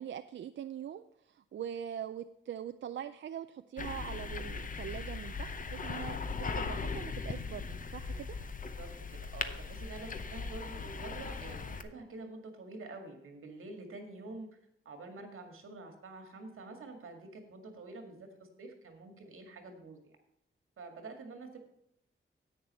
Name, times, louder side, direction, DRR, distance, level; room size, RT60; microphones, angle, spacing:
voice 1, 0.0-6.2 6.5-8.4, right 9 dB, 65° right, 10 dB, 0.4 m, -42 dB
sound 1, 3.8-11.8, left 4 dB, 40° left, 0.7 m, -39 dB
voice 2, 8.8-14.6 14.9-20.1 20.8-21.6, right 3 dB, 90° right, 5 dB, 2.0 m, -47 dB
10.0 x 8.7 x 4.3 m, 0.76 s
wide cardioid pair, 160°, 21 cm